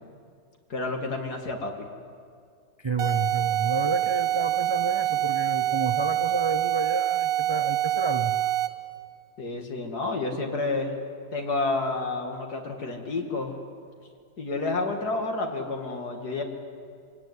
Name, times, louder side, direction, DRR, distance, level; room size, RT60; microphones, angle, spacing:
voice 1, 0.7-1.7 9.4-10.9 11.3-13.5 14.4-16.4, left 3 dB, 70° left, 2 dB, 2.9 m, -29 dB
voice 2, 2.8-8.4, right 3 dB, 45° right, 8 dB, 0.3 m, -30 dB
sound 1, 3.0-8.9, right 13 dB, 65° right, 1.2 m, -26 dB
26.0 x 17.5 x 9.6 m, 2.2 s
omnidirectional pair, 1.7 m